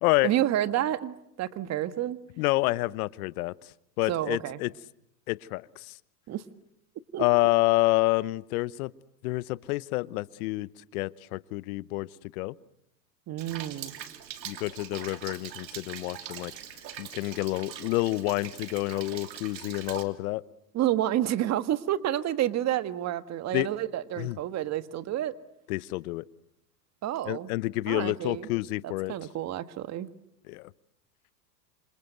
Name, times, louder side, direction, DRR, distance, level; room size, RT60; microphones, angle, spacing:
voice 1, 0.2-2.2 4.1-4.6 6.3-6.4 7.1-7.2 13.3-13.9 20.7-25.3 27.0-27.5 27.9-28.5 28.8-30.1, right 12 dB, 30° right, 13 dB, 1.6 m, -29 dB
voice 2, 2.4-3.5 4.0-4.7 5.3-6.0 7.2-8.9 9.2-12.1 12.3-12.5 14.4-16.5 17.0-20.4 23.5-23.7 24.2-24.4 25.7-26.3 27.3-29.1 30.5-30.7, left 20 dB, 60° left, 20 dB, 1.0 m, -28 dB
Rain, 13.4-20.0, right 9 dB, 85° right, 2.8 m, -42 dB
27.0 x 27.0 x 7.9 m, 0.78 s
hypercardioid pair, 115°, 50 cm